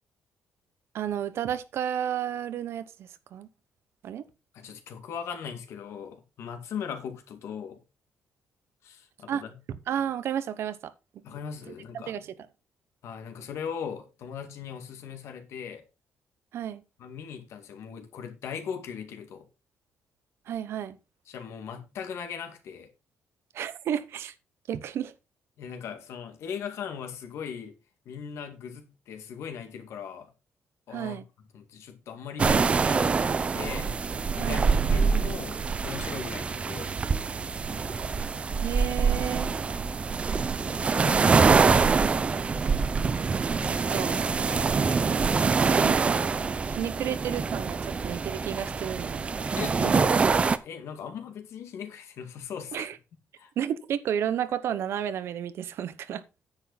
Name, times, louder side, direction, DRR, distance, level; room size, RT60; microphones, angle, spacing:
voice 1, 0.9-3.5 4.0-4.2 9.3-9.4 9.7-10.9 11.9-12.3 16.5-16.8 20.5-21.0 23.5-24.3 24.7-25.1 30.9-31.2 34.4-34.7 38.6-39.5 43.6-44.2 45.8-46.2 46.7-49.2 49.8-49.9 52.7-53.0 53.6-56.2, right 9 dB, 60° right, 1.0 m, -32 dB
voice 2, 4.5-7.8 8.8-9.6 11.2-12.2 13.0-15.8 17.0-19.5 21.3-22.9 25.6-27.8 28.1-30.3 30.9-31.2 31.5-33.9 34.4-37.0 40.6-42.0 49.6-52.9 53.4-53.5, left 7 dB, 70° left, 2.2 m, -39 dB
sound 1, 32.4-50.6, right 5 dB, 25° right, 0.6 m, -25 dB
9.8 x 8.2 x 4.1 m
cardioid pair, 170°, 5 cm